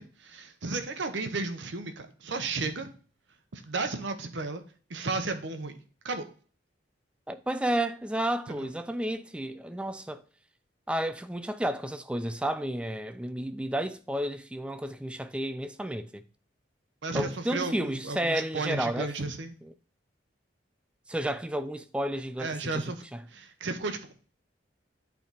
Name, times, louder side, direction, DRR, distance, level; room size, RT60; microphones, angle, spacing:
voice 1, 0.0-2.9 3.5-4.6 4.9-5.8 6.0-6.3 8.5-8.7 17.0-19.5 22.4-23.0 23.3-24.1, right 3 dB, 70° right, 0.8 m, -33 dB
voice 2, 7.3-10.2 10.9-16.2 17.1-19.1 21.1-22.8 23.1-23.2, right 1 dB, 5° right, 0.3 m, -31 dB
8.8 x 3.5 x 4.0 m
head